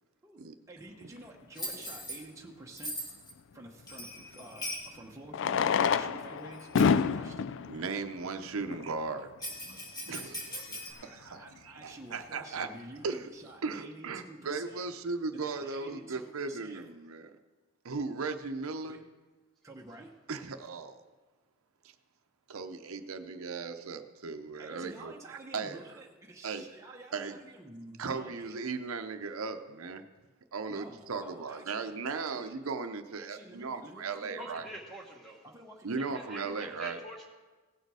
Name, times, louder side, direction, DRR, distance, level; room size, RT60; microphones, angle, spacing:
voice 1, 0.7-3.0 3.5-7.5 9.4-10.1 11.4-14.9 15.3-16.8 18.8-19.0 19.6-20.1 24.6-28.6 30.7-32.2 33.2-34.8 35.4-36.8, right 2 dB, 15° right, -1 dB, 0.9 m, -50 dB
Bell, 1.6-2.2 2.8-3.3 3.9-4.9 5.8-5.9 6.5-7.0 9.4-10.9, equal, 20° left, 1.9 m, -40 dB
Fireworks, 1.7-1.8 4.1-4.2 5.3-9.0 9.8-9.9 10.1-10.2 10.4-10.5 11.0-11.2, left 6 dB, 60° left, 0.3 m, -29 dB
voice 2, 7.7-9.3 10.1-12.7 13.0-13.3 13.6-17.3 17.8-19.0 20.3-21.0 22.5-25.8 26.4-27.4 28.0-30.0 30.5-34.7 35.8-37.0, right 4 dB, 85° right, 8 dB, 0.7 m, -37 dB
voice 3, 34.4-35.4 36.0-37.3, right 1 dB, ahead, -2 dB, 1.3 m, -45 dB
17.0 x 6.6 x 4.8 m, 1.3 s
head